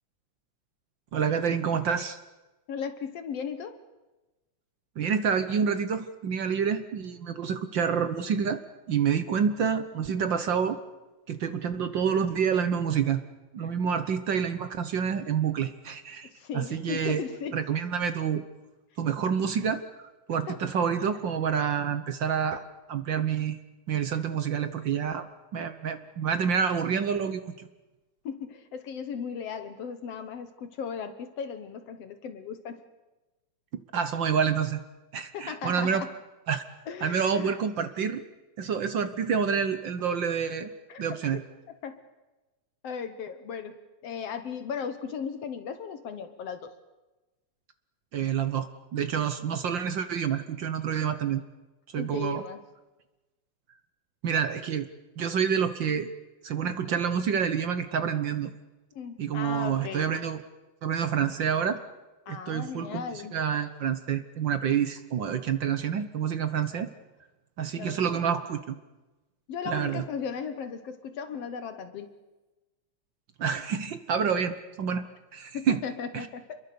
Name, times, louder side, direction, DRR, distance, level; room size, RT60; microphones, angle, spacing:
voice 1, 1.1-2.2 5.0-8.6 8.9-10.8 11.3-13.2 13.5-17.2 17.5-18.4 19.0-19.8 20.3-22.6 22.9-23.6 23.9-25.3 25.5-27.7 33.9-34.8 35.1-36.0 36.5-36.6 37.0-38.2 38.6-40.7 41.0-41.4 48.1-51.4 51.9-52.4 54.2-54.9 55.2-56.1 56.4-58.5 59.2-60.4 60.8-61.8 62.3-66.9 67.6-68.8 69.7-70.0 73.4-75.1 75.3-75.8 76.1-76.3, right 7 dB, 65° right, 10 dB, 1.1 m, -28 dB
voice 2, 2.7-3.8 13.6-13.7 16.2-17.6 20.5-20.6 24.1-24.2 28.2-32.8 35.3-36.1 36.9-37.6 40.9-41.2 41.8-42.0 42.8-46.7 52.0-52.6 58.9-60.2 62.3-63.4 67.8-68.4 69.5-72.1 75.5-76.6, left 6 dB, 60° left, 10 dB, 2.1 m, -37 dB
28.0 x 22.5 x 6.9 m, 1.1 s
omnidirectional pair, 3.4 m